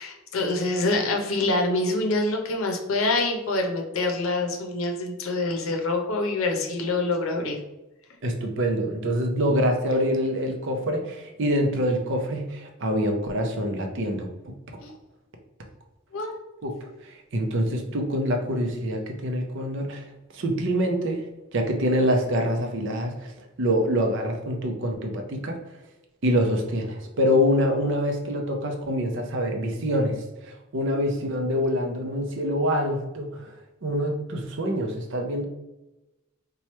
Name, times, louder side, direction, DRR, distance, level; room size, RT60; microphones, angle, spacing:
voice 1, 0.0-7.6 14.8-14.9 16.1-16.4, left 2 dB, 75° left, 2 dB, 0.6 m, -26 dB
voice 2, 8.2-14.5 16.6-16.7 17.0-20.0 20.3-21.2 21.5-23.3 23.6-25.6 26.2-30.2 30.5-33.5 33.8-35.5, equal, 60° right, 3 dB, 0.6 m, -25 dB
3.0 x 2.3 x 4.2 m, 0.99 s
head